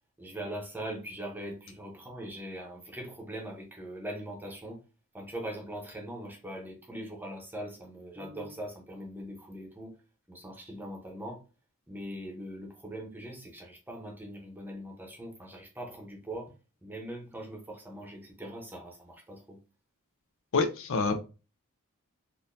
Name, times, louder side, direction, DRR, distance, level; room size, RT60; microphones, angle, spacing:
voice 1, 0.2-4.8 5.1-10.0 10.3-11.4 11.9-16.5 16.8-19.6, right 1 dB, 10° right, 0.8 m, -41 dB
voice 2, 20.5-21.2, left 4 dB, 60° left, 0.5 m, -26 dB
3.8 x 2.6 x 2.6 m
head